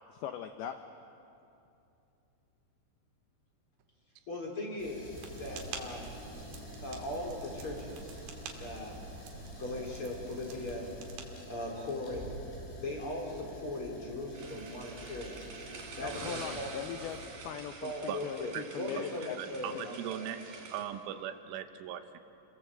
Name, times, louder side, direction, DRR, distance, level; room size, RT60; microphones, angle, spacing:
voice 1, 0.1-0.8 16.0-19.4 19.7-19.8, left 9 dB, 85° left, 7 dB, 2.2 m, -40 dB
voice 2, 4.3-6.1 6.8-8.3 8.6-9.0 9.6-10.9 11.5-12.3 12.8-15.4 16.0-16.7 17.8-20.3, left 1 dB, 30° left, -1 dB, 4.1 m, -39 dB
sound 1, 4.8-17.5, equal, 65° left, 8.2 m, -49 dB
sound 2, 5.1-11.6, right 3 dB, 65° right, 4.4 m, -46 dB
sound 3, 14.3-20.8, right 4 dB, 50° right, 4.3 m, -46 dB
voice 3, 19.4-22.2, right 10 dB, 85° right, 8 dB, 3.6 m, -39 dB
29.5 x 23.0 x 7.7 m, 2.8 s
omnidirectional pair, 5.6 m